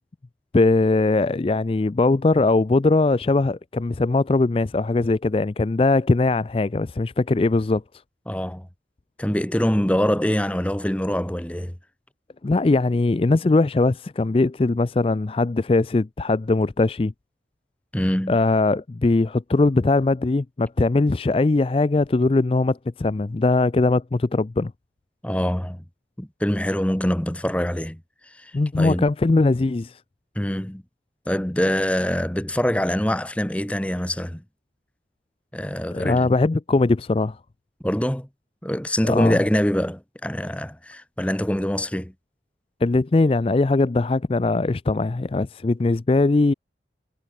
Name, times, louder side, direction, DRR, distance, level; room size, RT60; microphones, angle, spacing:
voice 1, 0.5-7.8 12.4-17.1 18.3-24.7 28.5-30.0 35.9-37.4 39.0-39.4 42.8-46.5, left 3 dB, 30° left, 0.4 m, -20 dB
voice 2, 8.3-8.7 9.2-11.7 17.9-18.4 25.2-25.8 26.2-28.0 28.4-28.5 28.8-29.0 30.4-30.8 31.3-34.4 35.5-36.3 37.8-38.3 38.6-42.1, equal, 5° left, 0.9 m, -24 dB
head